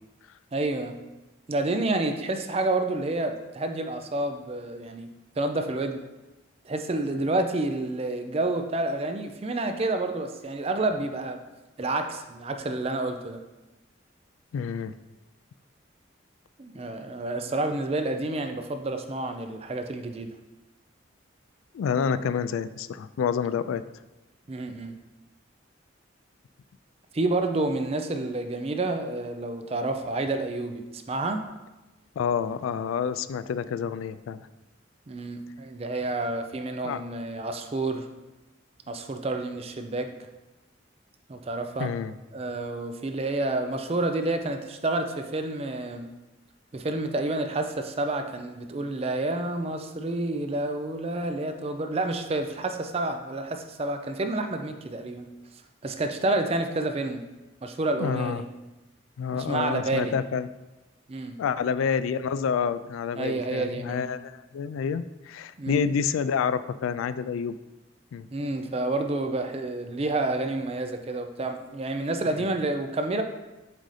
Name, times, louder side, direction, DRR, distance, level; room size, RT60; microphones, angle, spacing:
voice 1, 0.5-1.0 1.5-5.1 5.4-6.0 6.6-11.4 11.8-13.4 16.6-20.3 24.5-24.9 27.1-31.4 35.1-38.1 38.9-40.1 41.3-41.9 42.3-46.1 46.7-55.3 55.8-57.2 57.6-58.5 59.3-60.1 61.1-61.4 63.2-64.1 65.6-65.8 68.3-73.2, right 2 dB, 30° right, 6 dB, 0.4 m, -29 dB
voice 2, 14.5-14.9 21.7-23.8 32.2-34.5 36.8-37.0 41.8-42.1 58.0-58.4 59.2-60.5 61.4-67.6 68.1-68.3, left 6 dB, 90° left, 14 dB, 0.3 m, -28 dB
7.4 x 2.7 x 4.8 m, 1.1 s
head